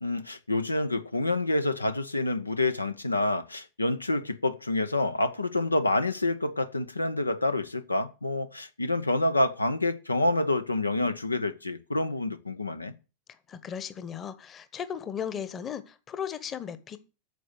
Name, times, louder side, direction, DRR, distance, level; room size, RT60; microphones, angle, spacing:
voice 1, 0.0-12.9, left 2 dB, 80° left, 0.7 m, -28 dB
voice 2, 13.5-17.0, left 8 dB, 25° left, 1.2 m, -36 dB
9.3 x 6.8 x 8.0 m
figure-of-eight pair, 90°, 0 cm